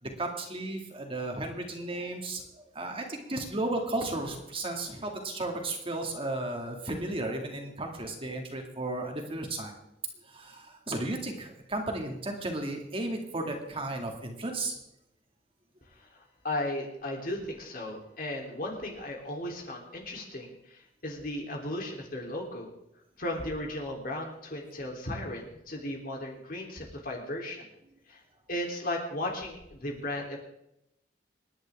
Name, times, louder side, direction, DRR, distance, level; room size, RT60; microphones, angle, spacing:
voice 1, 0.0-9.8 10.2-14.7, right 2 dB, 35° right, 2 dB, 2.4 m, -34 dB
voice 2, 15.9-22.7 23.2-27.6 28.1-28.2 28.5-30.4, left 1 dB, 55° left, 0 dB, 3.5 m, -36 dB
27.0 x 10.5 x 3.7 m, 0.82 s
head